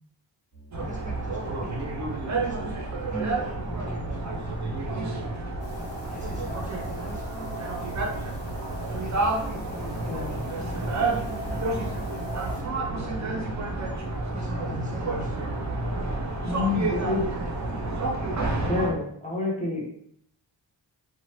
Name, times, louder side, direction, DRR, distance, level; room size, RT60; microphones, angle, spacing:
sound 1, 0.5-10.4, right 3 dB, 40° left, 1.3 m, -47 dB
sound 2, 0.7-18.9, right 2 dB, 40° right, 0.6 m, -30 dB
voice 1, 0.8-1.8 2.4-2.8 3.1-5.3 6.1-7.2 9.5-13.6 14.3-15.4 16.5-17.9, right 1 dB, 15° right, -2 dB, 0.9 m, -41 dB
sound 3, 5.6-12.6, left 2 dB, 75° left, 1.0 m, -44 dB
voice 2, 16.4-17.3 18.7-19.9, left 3 dB, 15° left, -3 dB, 0.8 m, -28 dB
2.8 x 2.2 x 2.9 m, 0.68 s
wide cardioid pair, 80°, 45 cm